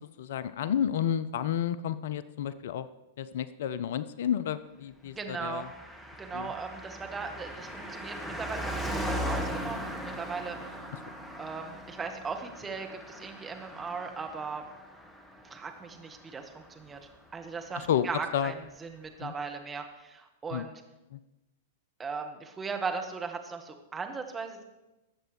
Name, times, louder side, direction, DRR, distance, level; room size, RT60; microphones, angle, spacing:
voice 1, 0.2-2.9 3.2-5.7 6.3-6.5 17.8-18.1 18.3-18.5 19.2-19.3 20.5-20.6 21.1-21.2, left 9 dB, 55° left, 15 dB, 0.4 m, -31 dB
voice 2, 5.0-5.7 6.2-10.8 11.4-14.7 15.5-17.0 17.3-20.8 22.0-24.6, right 5 dB, 15° right, 4 dB, 1.5 m, -38 dB
Car passing by, 5.3-17.2 17.4-17.5, equal, 10° left, 1.6 m, -39 dB
19.5 x 7.7 x 3.3 m, 1.0 s
figure-of-eight pair, 100°, 0 cm